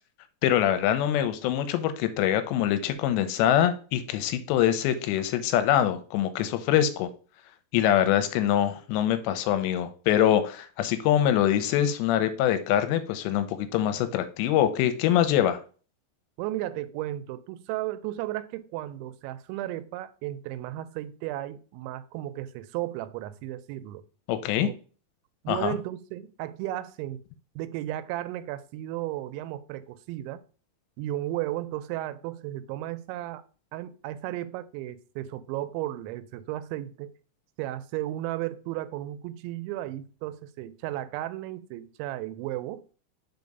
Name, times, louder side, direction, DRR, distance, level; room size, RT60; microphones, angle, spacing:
voice 1, 0.4-7.1 7.7-15.6 24.3-24.7 25.5-25.8, left 11 dB, 85° left, 2.7 m, -24 dB
voice 2, 16.4-24.0 24.6-24.7 25.4-27.2 27.6-30.4 31.0-33.4 33.7-37.1 37.6-42.8, right 14 dB, 90° right, 2.9 m, -34 dB
5.5 x 4.7 x 5.2 m
omnidirectional pair, 5.2 m